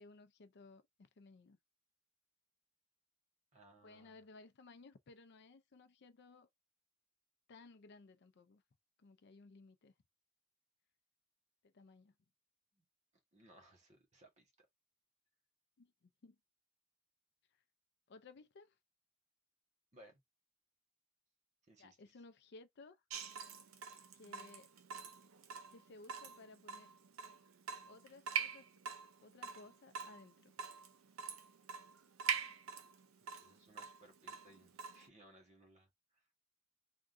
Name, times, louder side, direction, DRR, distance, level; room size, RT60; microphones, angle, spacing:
voice 1, 0.0-1.6 3.8-6.5 7.5-8.6 9.0-9.9 11.7-12.1 15.8-16.4 18.1-18.8 21.8-23.0 24.1-24.7 25.7-26.9 27.3-27.4 27.9-28.7 29.2-30.5, left 3 dB, 55° left, 0.5 m, -59 dB
voice 2, 3.5-4.2 12.8-12.9 13.3-14.7 19.9-20.2 21.7-22.0 33.2-36.2, right 1 dB, 35° right, 1.3 m, -63 dB
Water tap faucet / Drip, 23.1-35.1, right 7 dB, 85° right, 0.6 m, -45 dB
3.5 x 2.2 x 2.5 m
head